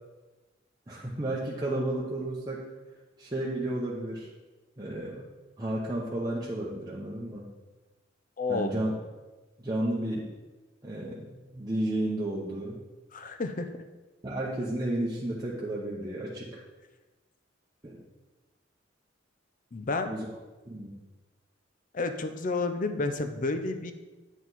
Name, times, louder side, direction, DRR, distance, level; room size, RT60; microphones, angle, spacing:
voice 1, 0.9-2.7 3.2-4.3 4.8-5.3 5.6-7.5 8.5-8.9 9.6-10.3 10.8-12.8 14.2-16.6 17.8-18.0 20.1-20.4 20.7-20.9, right 1 dB, 20° right, -5 dB, 0.8 m, -32 dB
voice 2, 8.4-8.8 13.1-13.7 19.7-20.1 21.9-23.9, left 3 dB, 45° left, 8 dB, 0.6 m, -30 dB
9.0 x 4.6 x 4.0 m, 1.2 s
head